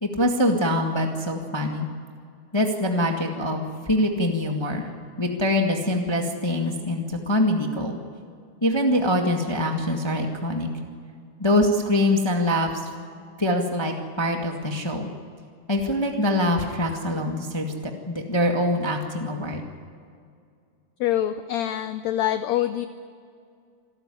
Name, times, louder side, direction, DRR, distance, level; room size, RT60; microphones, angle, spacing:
voice 1, 0.0-1.9 2.5-4.9 5.2-7.9 8.6-10.7 11.4-12.7 13.4-15.1 15.7-19.6, left 1 dB, 15° left, 2 dB, 1.0 m, -24 dB
voice 2, 21.0-22.9, left 12 dB, 75° left, 11 dB, 1.7 m, -25 dB
27.0 x 13.5 x 9.9 m, 2.3 s
omnidirectional pair, 3.7 m